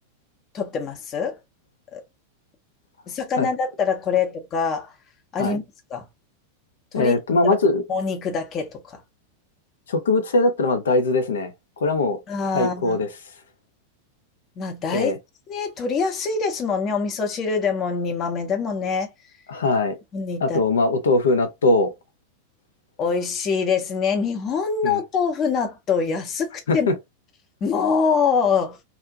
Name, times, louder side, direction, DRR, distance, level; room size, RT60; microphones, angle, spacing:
voice 1, 0.5-1.4 1.9-2.0 3.1-4.9 5.3-5.6 5.9-6.1 6.9-7.1 7.9-9.0 12.3-13.0 14.6-15.1 15.5-19.1 20.1-20.6 23.0-26.9 27.6-28.8, left 5 dB, 30° left, 0.8 m, -24 dB
voice 2, 6.9-7.8 9.9-11.5 11.8-12.2 12.5-13.1 14.9-15.2 19.5-20.0 20.4-21.9 24.8-25.0 26.7-26.9, left 2 dB, 65° left, 0.6 m, -21 dB
2.5 x 2.1 x 2.7 m
figure-of-eight pair, 90°, 0 cm